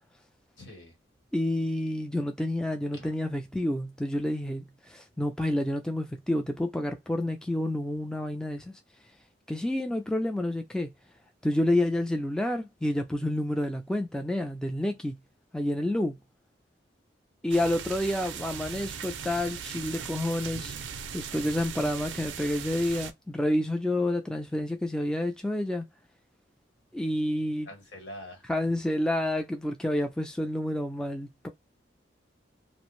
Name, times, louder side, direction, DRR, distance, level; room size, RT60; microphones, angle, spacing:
voice 1, 0.6-1.0 2.9-3.2 27.6-28.5, left 1 dB, 70° left, 1.2 m, -45 dB
voice 2, 1.3-8.7 9.5-10.9 11.4-15.2 15.5-16.1 17.4-20.8 21.1-25.9 26.9-27.7 28.5-31.5, left 1 dB, 5° left, 0.3 m, -29 dB
sound 1, 17.5-23.1, right 7 dB, 80° right, 0.4 m, -39 dB
2.5 x 2.1 x 2.9 m
head